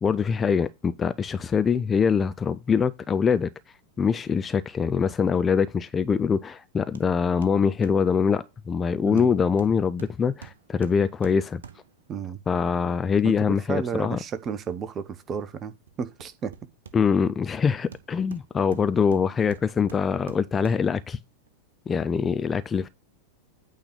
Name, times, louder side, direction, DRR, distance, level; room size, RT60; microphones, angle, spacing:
voice 1, 0.0-3.5 4.0-11.6 12.5-14.2 16.9-21.2 21.9-22.9, left 6 dB, 20° left, 0.4 m, -24 dB
Hammer, 6.9-7.1 7.4-8.1 9.2-12.1 15.9-17.3 17.9-21.0 21.5-21.6, right 7 dB, 65° right, 0.8 m, -47 dB
voice 2, 13.2-16.5, right 7 dB, 25° right, 0.9 m, -32 dB
8.8 x 4.0 x 6.1 m
figure-of-eight pair, 90°, 0 cm